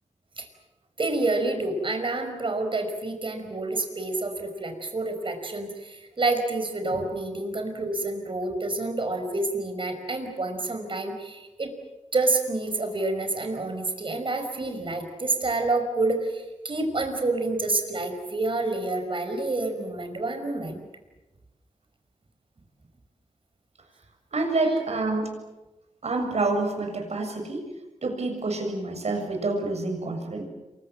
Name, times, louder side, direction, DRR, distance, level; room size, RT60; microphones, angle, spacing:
voice 1, 1.0-11.7 12.1-20.8, right 2 dB, 45° right, 6 dB, 5.5 m, -28 dB
voice 2, 24.3-25.3 26.0-27.7 28.0-30.4, right 2 dB, 65° right, 5 dB, 7.1 m, -27 dB
28.5 x 24.0 x 7.6 m, 1.1 s
cardioid pair, 70°, 12 cm